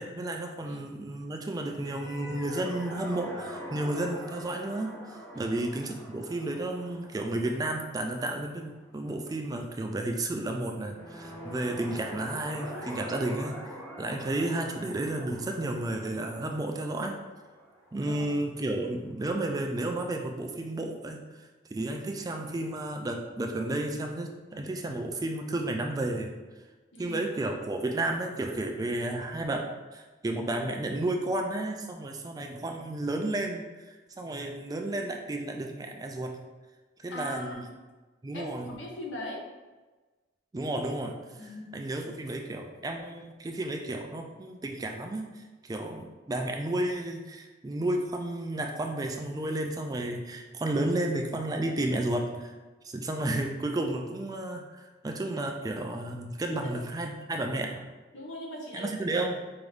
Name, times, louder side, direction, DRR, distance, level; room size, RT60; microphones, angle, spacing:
voice 1, 0.0-13.6 14.0-17.2 17.9-26.3 27.0-36.3 37.0-37.6 38.2-38.7 40.5-52.5 52.8-57.8 58.7-59.4, right 1 dB, 20° right, 3 dB, 0.3 m, -32 dB
sound 1, 1.7-8.9 10.8-18.6, equal, 15° left, 0.7 m, -44 dB
voice 2, 26.9-27.2 37.1-37.6 38.3-39.4 41.4-41.7 56.5-56.7 58.1-59.1, left 1 dB, 80° left, -1 dB, 0.9 m, -40 dB
4.8 x 2.6 x 3.3 m, 1.2 s
head